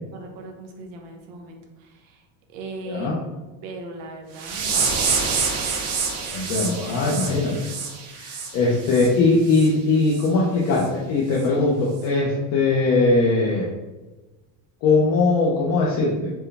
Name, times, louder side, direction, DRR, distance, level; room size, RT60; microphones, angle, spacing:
voice 1, 0.1-3.1 3.6-4.9 6.9-7.1, right 2 dB, 65° right, 3 dB, 0.8 m, -39 dB
sound 1, 4.4-9.1 9.5-9.7 10.1-10.3 10.7-10.9 11.4-11.5, right 5 dB, 40° right, 0.5 m, -27 dB
voice 2, 6.3-7.5 8.1-13.7 14.8-16.3, left 3 dB, 40° left, -5 dB, 0.6 m, -20 dB
4.5 x 2.2 x 3.3 m, 1.2 s
cardioid pair, 175°, 42 cm